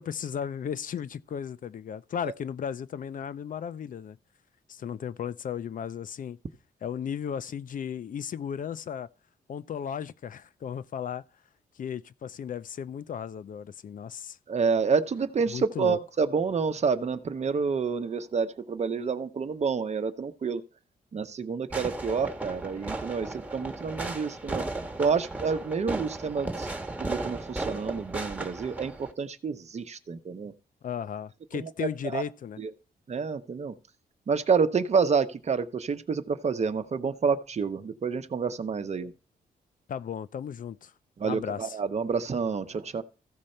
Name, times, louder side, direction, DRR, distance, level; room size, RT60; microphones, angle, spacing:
voice 1, 0.0-4.2 4.7-6.4 6.8-9.1 9.5-11.2 11.8-14.4 15.5-16.0 30.8-32.6 39.9-40.9 41.2-41.8, left 8 dB, 55° left, 0.6 m, -35 dB
voice 2, 14.5-20.6 21.1-24.6 25.0-26.7 27.0-30.5 31.6-32.2 32.6-32.7 33.1-33.7 34.3-39.1 41.2-43.0, right 5 dB, 45° right, 0.9 m, -28 dB
Fireworks, 21.7-29.1, right 2 dB, 10° right, 1.2 m, -35 dB
15.0 x 5.2 x 4.4 m
cardioid pair, 110°, 16 cm